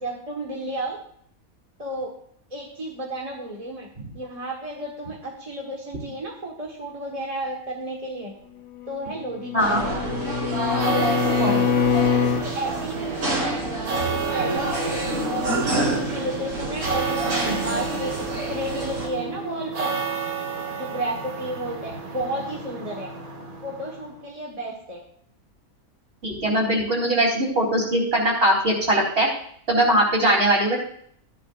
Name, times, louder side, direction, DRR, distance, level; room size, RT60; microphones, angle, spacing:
voice 1, 0.0-1.0 1.8-2.1 2.5-3.9 4.1-8.3 8.9-10.0 10.7-11.7 12.4-14.8 15.2-19.9 20.6-23.1 23.6-25.0, right 1 dB, 25° right, -2 dB, 1.6 m, -32 dB
Bowed string instrument, 9.1-12.5, left 7 dB, 60° left, 1.2 m, -24 dB
sound 1, 9.6-19.1, right 1 dB, 65° right, 3.7 m, -28 dB
sound 2, 10.6-24.1, right 5 dB, 80° right, 2.2 m, -31 dB
voice 2, 26.2-29.3 29.7-30.8, right 1 dB, 45° right, -3 dB, 4.0 m, -21 dB
14.5 x 11.0 x 2.6 m, 0.64 s
omnidirectional pair, 1.5 m